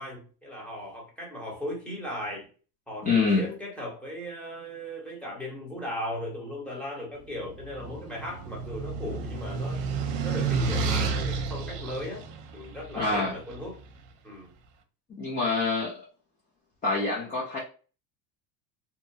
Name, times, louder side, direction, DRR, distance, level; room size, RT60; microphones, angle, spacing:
voice 1, 0.0-2.5 2.9-9.8 10.2-12.2 12.5-13.8 14.2-14.5, left 1 dB, ahead, 1.0 m, -37 dB
voice 2, 3.0-3.5 13.0-13.4 15.1-16.1 16.8-17.6, left 3 dB, 20° left, 0.6 m, -26 dB
sound 1, 7.4-13.7, right 4 dB, 60° right, 0.7 m, -31 dB
2.8 x 2.2 x 2.7 m
cardioid pair, 130°, 48 cm